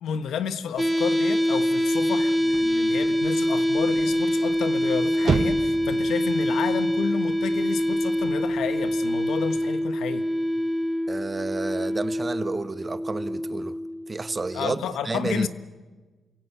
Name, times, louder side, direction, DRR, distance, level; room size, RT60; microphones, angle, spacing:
voice 1, 0.0-10.3 14.5-15.5, left 8 dB, 85° left, 1.4 m, -31 dB
sound 1, 0.8-14.7, equal, ahead, 1.1 m, -25 dB
sound 2, 2.0-10.3, right 5 dB, 55° right, 1.5 m, -35 dB
voice 2, 11.1-13.8 14.1-15.5, right 3 dB, 30° right, 1.3 m, -31 dB
28.5 x 24.0 x 8.5 m
cardioid pair, 85°, 0 cm